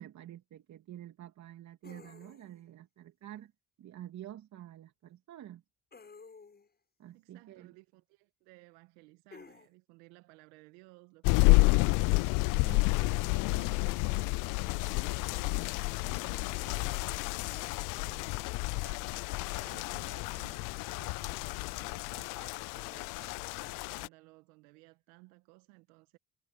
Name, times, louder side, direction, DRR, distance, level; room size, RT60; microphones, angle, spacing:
voice 1, 0.0-3.5 3.8-5.6 7.0-7.8 12.4-12.8, right 12 dB, 55° right, 2.7 m, -48 dB
sound 1, 1.8-2.6 5.9-6.7 9.3-9.7 11.5-12.2 14.1-14.4, left 4 dB, 30° left, 7.6 m, -53 dB
voice 2, 7.1-11.9 12.5-19.1 19.5-26.2, right 24 dB, 80° right, 1.6 m, -58 dB
sound 2, 11.2-24.1, left 27 dB, 65° left, 0.5 m, -30 dB
hypercardioid pair, 70°, 34 cm